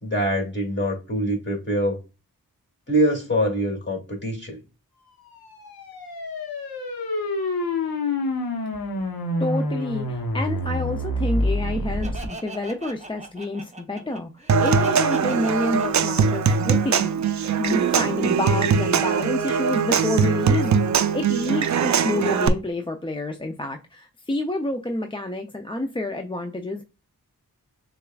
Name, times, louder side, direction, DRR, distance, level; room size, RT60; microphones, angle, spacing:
voice 1, 0.0-2.0 2.9-4.6, equal, 30° left, 2.2 m, -24 dB
sound 1, 5.3-12.3, left 1 dB, 85° left, 0.9 m, -27 dB
voice 2, 9.4-17.1 17.6-20.8 21.1-26.8, left 1 dB, 15° left, 0.4 m, -28 dB
Laughter, 12.0-17.7, right 2 dB, 20° right, 0.7 m, -40 dB
Human voice / Acoustic guitar / Percussion, 14.5-22.5, right 6 dB, 55° right, 0.4 m, -21 dB
6.6 x 2.4 x 2.2 m
cardioid pair, 50°, 36 cm